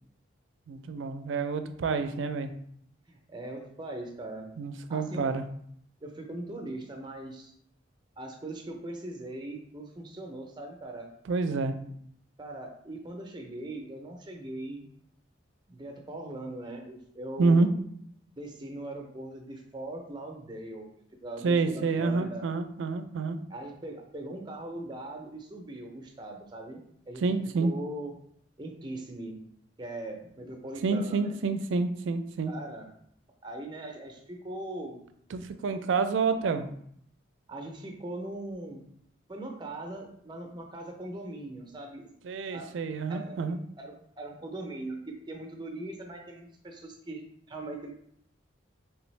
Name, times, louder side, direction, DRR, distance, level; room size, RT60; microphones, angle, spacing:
voice 1, 0.7-2.5 4.6-5.4 11.3-11.7 17.4-17.7 21.4-23.4 27.2-27.7 30.8-32.5 35.3-36.7 42.2-43.6, right 4 dB, 80° right, 10 dB, 0.4 m, -28 dB
voice 2, 3.1-4.5 4.9-5.3 6.0-7.5 8.2-11.1 11.8-11.9 12.4-14.9 15.7-17.7 18.3-20.9 21.2-22.4 23.5-27.2 27.6-28.1 28.6-29.4 29.8-31.4 32.5-32.9 33.4-35.0 37.5-38.9 39.3-42.1 42.5-42.8 43.1-47.9, right 1 dB, 25° right, 2 dB, 0.5 m, -40 dB
3.4 x 3.3 x 3.1 m, 0.67 s
head